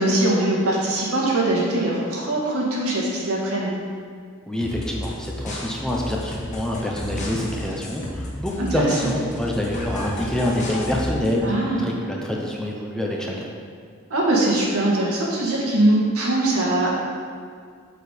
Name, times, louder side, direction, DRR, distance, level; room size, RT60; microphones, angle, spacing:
voice 1, 0.0-3.7 8.6-8.9 11.4-11.9 14.1-16.9, right 1 dB, 85° right, -4 dB, 1.9 m, -21 dB
voice 2, 4.5-13.5, left 1 dB, 5° left, -2 dB, 0.7 m, -26 dB
sound 1, 4.6-11.4, left 1 dB, 35° left, 1.3 m, -32 dB
6.8 x 6.3 x 5.1 m, 2.1 s
head